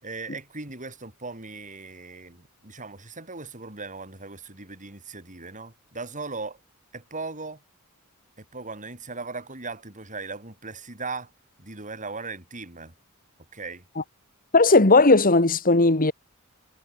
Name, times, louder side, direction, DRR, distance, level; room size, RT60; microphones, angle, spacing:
voice 1, 0.0-6.6 6.9-7.6 8.4-11.3 11.6-12.9 13.5-13.8, right 3 dB, 35° right, 7.1 m, -38 dB
voice 2, 14.5-16.1, left 3 dB, 40° left, 2.1 m, -17 dB
head